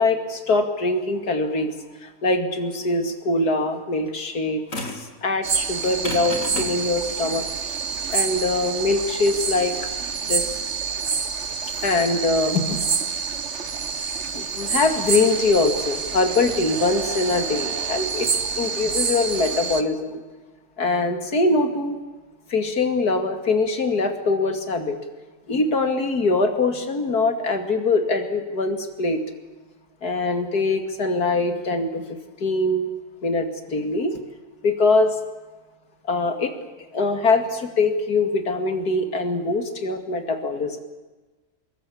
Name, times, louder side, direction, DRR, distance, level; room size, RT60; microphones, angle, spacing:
voice 1, 0.0-1.7 2.0-4.6 4.9-7.4 8.1-9.8 10.2-10.6 11.8-12.9 14.3-20.2 20.8-22.0 22.5-25.0 25.5-29.2 30.0-32.9 33.2-34.2 34.6-35.1 36.1-36.5 36.9-40.8, left 3 dB, 75° left, 7 dB, 2.9 m, -23 dB
sound 1, 4.7-5.1 5.8-10.8, left 2 dB, 55° left, 3.8 m, -34 dB
sound 2, 5.4-19.8, right 6 dB, 50° right, 1.5 m, -27 dB
25.5 x 21.5 x 8.6 m, 1.2 s
omnidirectional pair, 1.7 m